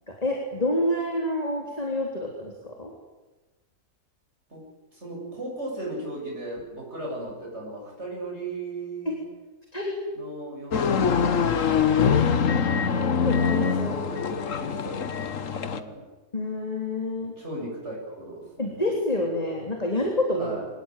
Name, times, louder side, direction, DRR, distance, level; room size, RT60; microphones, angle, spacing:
voice 1, 0.2-2.9 9.1-9.2 9.7-10.0 13.2-14.0 16.3-17.3 18.6-20.5, left 1 dB, 25° left, 0 dB, 3.6 m, -28 dB
voice 2, 4.5-9.3 10.1-11.9 13.9-15.0 15.7-16.0 17.2-18.8 20.4-20.7, right 2 dB, 45° right, -2 dB, 7.9 m, -37 dB
sound 1, 10.7-15.8, left 6 dB, 55° left, 1.5 m, -23 dB
25.0 x 18.5 x 9.2 m, 1.2 s
omnidirectional pair, 1.6 m